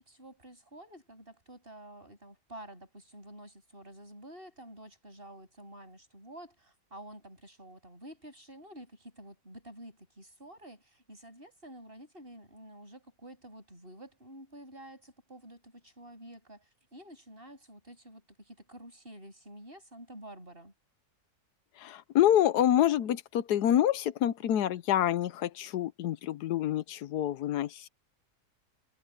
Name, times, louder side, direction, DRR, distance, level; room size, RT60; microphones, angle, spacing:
voice 1, 0.0-20.7, right 1 dB, 35° right, 8.4 m, -50 dB
voice 2, 21.8-27.9, left 11 dB, 85° left, 1.3 m, -27 dB
omnidirectional pair, 1.7 m